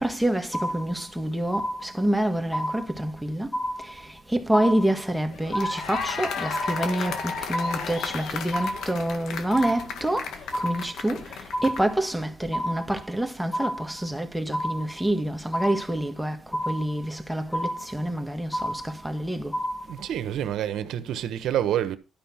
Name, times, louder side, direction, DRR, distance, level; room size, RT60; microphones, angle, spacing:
voice 1, 0.0-3.5 4.3-10.3 10.6-11.2 11.6-16.4 16.7-19.5, right 1 dB, 5° right, 1.7 m, -27 dB
sound 1, 0.5-1.2 1.5-2.2 2.5-3.2 3.5-4.2 4.5-5.2 5.5-6.2 6.5-7.2 7.5-8.2 8.5-9.2 9.5-10.2 10.5-11.2 11.5-12.2 12.5-13.2 13.5-14.2 14.5-15.2 15.5-16.2 16.5-17.2 17.5-18.2 18.5-19.2 19.5-20.2, equal, 15° left, 1.3 m, -31 dB
sound 2, 5.3-12.0, left 6 dB, 75° left, 1.8 m, -34 dB
voice 2, 19.9-22.0, right 11 dB, 75° right, 1.2 m, -27 dB
12.0 x 5.6 x 5.8 m
cardioid pair, 90°, 0 cm